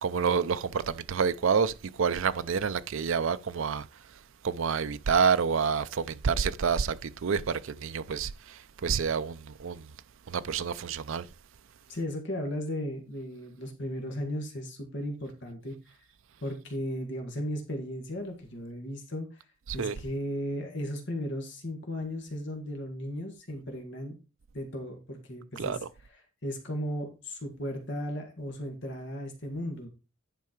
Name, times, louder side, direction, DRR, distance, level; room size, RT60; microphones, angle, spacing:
voice 1, 0.0-3.8 4.4-9.8 10.3-11.3 19.7-20.0 25.6-25.8, right 6 dB, 65° right, 0.5 m, -28 dB
voice 2, 11.9-16.0 16.4-19.4 19.7-24.2 24.5-25.8 26.4-29.9, equal, 55° left, 1.9 m, -36 dB
10.5 x 4.8 x 4.5 m
head